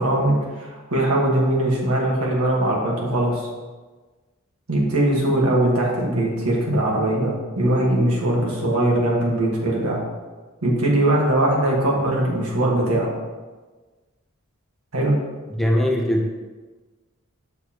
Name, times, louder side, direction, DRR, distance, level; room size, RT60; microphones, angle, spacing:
voice 1, 0.0-3.5 4.7-10.0 10.6-13.1 14.9-15.1, right 1 dB, 90° right, -3 dB, 1.7 m, -21 dB
voice 2, 15.5-16.3, equal, ahead, -1 dB, 0.7 m, -20 dB
6.7 x 6.5 x 3.0 m, 1.3 s
head